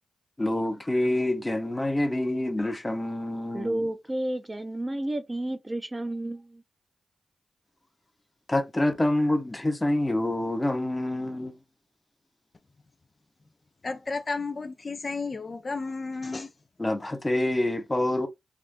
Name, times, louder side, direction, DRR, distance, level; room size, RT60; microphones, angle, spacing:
voice 1, 0.4-3.8 8.5-11.5 16.8-18.3, left 1 dB, 20° left, 0.8 m, -26 dB
voice 2, 3.5-6.6, right 1 dB, 25° right, 0.6 m, -31 dB
voice 3, 13.8-16.5, left 3 dB, 45° left, 0.4 m, -32 dB
3.4 x 2.4 x 2.5 m
cardioid pair, 50°, 0 cm